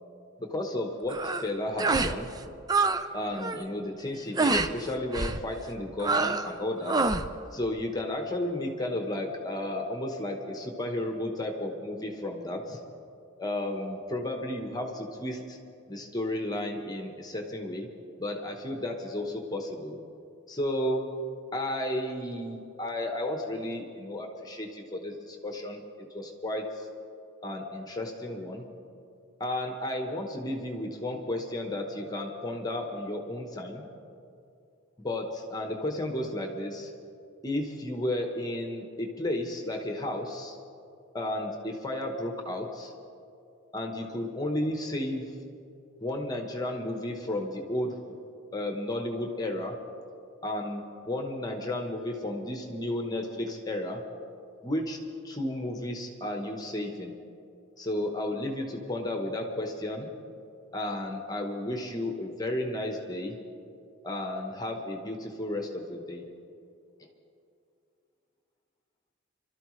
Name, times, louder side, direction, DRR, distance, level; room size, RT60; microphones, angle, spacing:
voice 1, 0.4-2.3 3.1-7.1 7.5-12.8 13.4-15.6 15.9-17.9 18.2-20.0 20.5-21.1 21.5-25.8 26.1-26.9 27.4-28.7 29.4-33.8 35.0-36.9 37.4-40.6 41.1-42.9 43.7-45.4 46.0-48.0 48.5-49.8 50.4-54.0 54.6-55.0 55.2-57.2 57.8-60.1 60.7-63.4 64.0-66.2, left 1 dB, 20° left, 3 dB, 1.1 m, -33 dB
sound 1, 1.1-1.5 1.8-2.2 2.4-3.0 3.3-3.6 4.4-4.7 5.1-5.4 6.0-6.5 6.8-7.3, right 3 dB, 20° right, 0.4 m, -26 dB
27.0 x 12.5 x 3.2 m, 2.5 s
head